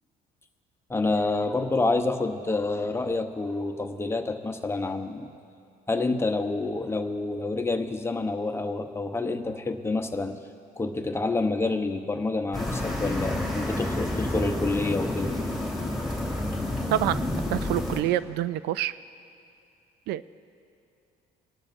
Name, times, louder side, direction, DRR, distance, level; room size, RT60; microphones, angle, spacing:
voice 1, 0.9-5.3 5.9-10.4 10.8-15.4, left 3 dB, 15° left, 5 dB, 0.9 m, -28 dB
sound 1, 12.5-18.0, left 1 dB, ahead, 2.5 m, -29 dB
voice 2, 16.9-18.9 20.1-20.2, right 13 dB, 80° right, 16 dB, 0.4 m, -27 dB
24.5 x 12.5 x 2.6 m, 2.7 s
cardioid pair, 110°, 17 cm